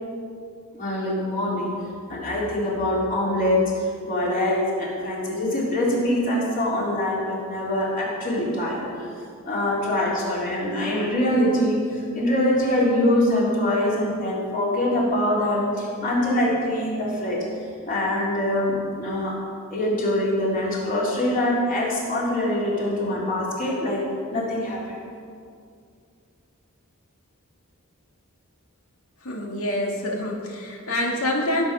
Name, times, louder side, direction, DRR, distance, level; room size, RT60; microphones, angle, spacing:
voice 1, 0.7-1.7 2.1-3.7 4.0-8.8 9.5-17.4 17.9-19.4 19.7-25.0, left 1 dB, 40° left, -5 dB, 3.5 m, -24 dB
voice 2, 29.2-31.6, left 1 dB, 90° left, 0 dB, 2.1 m, -26 dB
15.0 x 7.4 x 6.3 m, 2.3 s
head